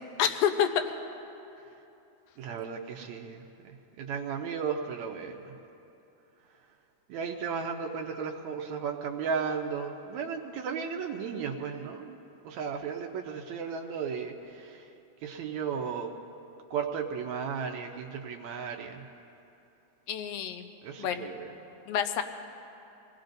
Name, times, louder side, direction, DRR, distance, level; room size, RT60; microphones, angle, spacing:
voice 1, 0.2-0.9 20.1-20.7 21.0-21.3 21.9-22.2, left 8 dB, 70° left, 7 dB, 1.6 m, -28 dB
voice 2, 2.4-5.5 7.1-12.2 12.4-14.9 15.2-16.1 16.7-19.0 20.8-21.5, right 6 dB, 75° right, 3 dB, 1.9 m, -35 dB
26.5 x 18.5 x 2.6 m, 2.8 s
omnidirectional pair, 3.6 m